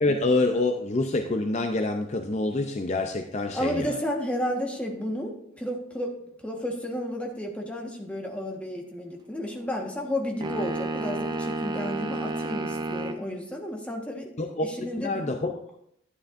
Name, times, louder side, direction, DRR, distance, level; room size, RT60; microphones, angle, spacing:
voice 1, 0.0-3.9 14.4-15.5, left 2 dB, 35° left, 5 dB, 0.5 m, -26 dB
voice 2, 3.5-6.1 6.4-14.3 14.6-15.3, equal, 5° left, 0 dB, 1.3 m, -32 dB
sound 1, 10.4-13.2, right 2 dB, 20° right, 0.5 m, -31 dB
11.5 x 9.8 x 2.6 m, 0.73 s
head